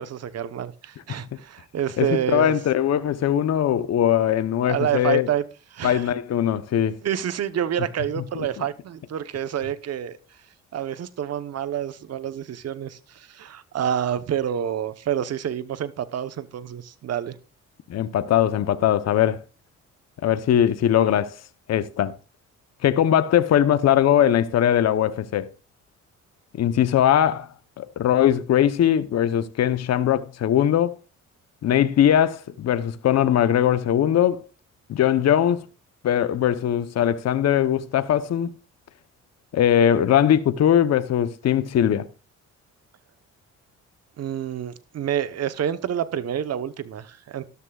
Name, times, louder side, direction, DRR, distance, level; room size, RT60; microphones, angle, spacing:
voice 1, 0.0-2.6 4.7-5.4 5.7-6.1 7.0-10.2 10.7-17.4 44.2-47.4, right 9 dB, 55° right, 1.0 m, -28 dB
voice 2, 2.0-5.3 5.8-7.0 8.4-8.6 17.9-19.4 20.2-21.3 21.7-22.2 22.8-25.5 26.6-27.5 27.8-30.9 31.6-34.4 34.9-35.6 36.0-38.5 39.5-42.1, left 10 dB, 60° left, 0.9 m, -20 dB
13.0 x 12.5 x 2.4 m
cardioid pair, 90°, 30 cm